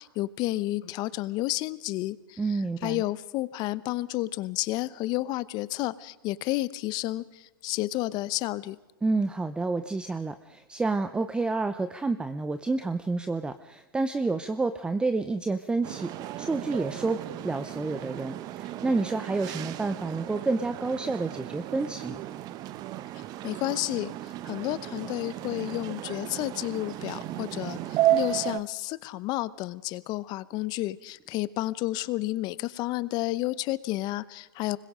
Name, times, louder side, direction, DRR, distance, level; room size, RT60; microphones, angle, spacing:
voice 1, 0.0-2.4 2.8-8.8 23.4-34.8, left 17 dB, 35° left, 18 dB, 0.9 m, -31 dB
voice 2, 2.4-3.0 9.0-16.1 16.4-22.2, right 3 dB, 10° right, 11 dB, 0.7 m, -29 dB
sound 1, 15.8-28.6, right 14 dB, 35° right, 0.9 m, -33 dB
25.5 x 21.5 x 5.1 m, 1.1 s
hypercardioid pair, 125°, 12 cm